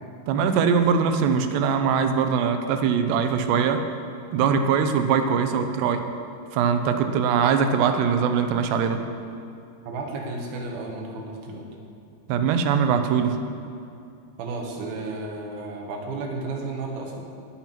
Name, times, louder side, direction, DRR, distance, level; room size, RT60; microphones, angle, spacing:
voice 1, 0.3-3.9 4.3-6.0 6.5-9.0 12.3-13.4, right 6 dB, 85° right, 7 dB, 2.8 m, -22 dB
voice 2, 9.9-11.6 14.4-17.2, right 3 dB, 70° right, 0 dB, 3.1 m, -33 dB
17.5 x 5.9 x 5.9 m, 2.5 s
omnidirectional pair, 4.9 m